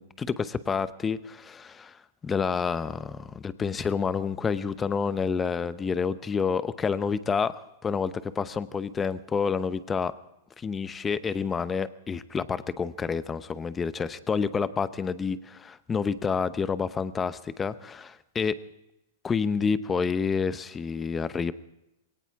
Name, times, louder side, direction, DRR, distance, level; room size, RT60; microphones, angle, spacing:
voice 1, 0.0-2.0 2.2-7.5 7.8-10.1 10.6-18.6 19.2-21.5, left 5 dB, 15° left, 14 dB, 0.8 m, -28 dB
22.0 x 18.0 x 3.6 m, 0.88 s
hypercardioid pair, 130°, 0 cm